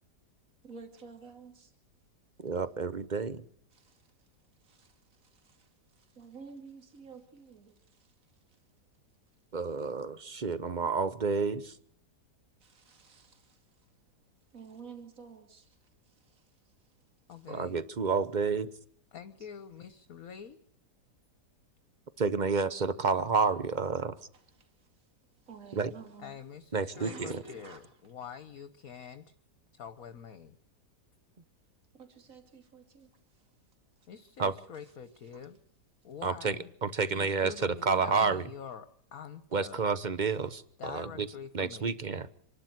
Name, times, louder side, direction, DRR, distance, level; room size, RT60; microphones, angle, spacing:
voice 1, 0.6-1.7 3.7-4.3 4.6-8.1 8.5-8.6 12.6-13.9 14.5-16.9 17.3-17.5 24.3-25.1 25.4-26.4 26.9-27.8 31.9-33.4, right 5 dB, 50° right, 3.0 m, -52 dB
voice 2, 2.4-3.4 9.5-11.7 17.5-18.7 22.2-24.2 25.7-25.9 26.7-27.4 34.4-34.5 36.2-36.6 36.8-38.4 39.5-41.3 41.5-42.3, right 4 dB, 35° right, 0.9 m, -30 dB
voice 3, 17.3-17.8 19.1-20.6 26.2-29.3 29.7-30.6 34.1-35.6 36.0-36.7 37.1-39.8 40.8-42.0, left 7 dB, 60° left, 1.5 m, -46 dB
26.5 x 12.0 x 9.4 m
omnidirectional pair, 1.8 m